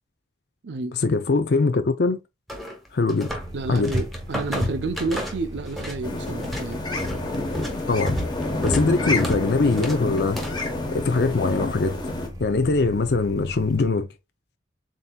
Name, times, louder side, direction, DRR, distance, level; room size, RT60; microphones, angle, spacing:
voice 1, 0.9-2.2 2.9-3.3 3.7-3.9 7.9-8.2 8.6-12.0 12.4-14.1, left 3 dB, 60° left, 0.5 m, -22 dB
sound 1, 2.5-3.5 3.8-6.0 6.3-10.7, equal, ahead, 1.1 m, -31 dB
sound 2, 3.3-13.9, equal, 20° right, 0.9 m, -38 dB
voice 2, 3.5-6.8 8.8-8.9, right 3 dB, 75° right, 0.6 m, -30 dB
sound 3, 6.0-12.3, left 2 dB, 25° left, 1.0 m, -29 dB
7.4 x 2.7 x 2.2 m
head